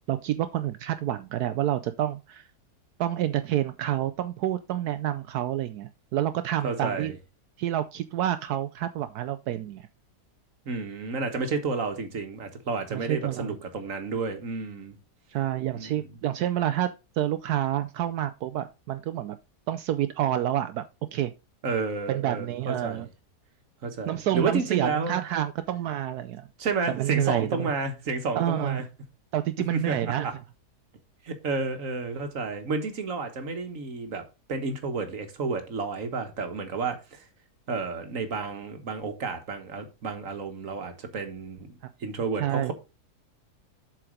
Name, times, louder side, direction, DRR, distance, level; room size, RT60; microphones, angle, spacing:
voice 1, 0.1-2.4 3.0-7.1 7.6-9.9 12.9-13.5 15.3-16.9 17.1-19.4 19.7-20.8 21.1-21.3 22.1-23.1 24.1-26.5 26.9-27.7 28.3-28.8 29.3-30.3 42.4-42.7, right 12 dB, 75° right, 1.1 m, -28 dB
voice 2, 6.6-7.1 10.6-15.0 15.7-16.0 21.6-23.0 23.8-25.1 26.6-28.8 29.7-30.3 31.2-37.2 37.7-42.7, right 4 dB, 55° right, 1.7 m, -31 dB
7.6 x 4.9 x 5.0 m
omnidirectional pair, 1.7 m